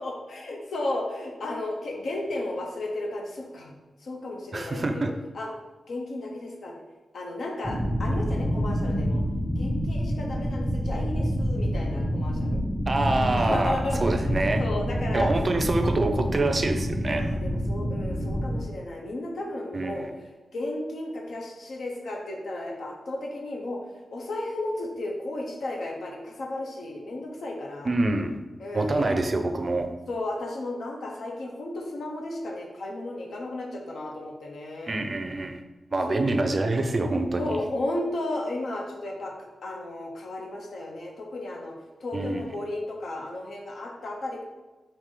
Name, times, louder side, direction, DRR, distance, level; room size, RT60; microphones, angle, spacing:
voice 1, 0.0-3.7 4.0-5.1 5.3-5.5 5.9-6.7 7.1-9.2 9.6-12.6 13.2-15.3 17.1-23.8 24.1-27.9 28.6-29.1 30.1-35.0 36.1-36.6 37.4-41.7 42.0-44.4, left 1 dB, 75° left, 0 dB, 0.7 m, -34 dB
voice 2, 4.5-5.1 12.9-13.7 14.0-14.6 15.1-17.3 19.7-20.1 27.8-28.4 28.7-29.9 34.9-35.6 35.9-37.5 42.1-42.5, right 2 dB, 40° right, 6 dB, 0.4 m, -26 dB
sound 1, 7.6-18.6, equal, 15° left, 0.6 m, -27 dB
4.7 x 2.6 x 3.7 m, 1.2 s
wide cardioid pair, 90°, 0 cm